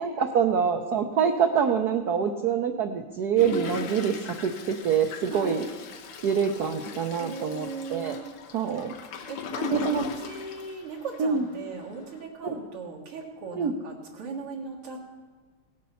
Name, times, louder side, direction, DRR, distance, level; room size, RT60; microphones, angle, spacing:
voice 1, 0.0-5.7 6.2-8.2 8.5-8.9 9.7-10.1 11.2-11.5 12.4-12.6 13.6-13.7, right 7 dB, 65° right, 4 dB, 1.0 m, -25 dB
Toilet flush, 3.4-11.4 11.9-12.0 12.1-12.2, left 4 dB, 80° left, 2.0 m, -38 dB
voice 2, 5.3-5.6 7.2-8.3 9.3-15.0, right 4 dB, 85° right, -2 dB, 2.5 m, -38 dB
17.5 x 8.5 x 5.7 m, 1.5 s
omnidirectional pair, 2.4 m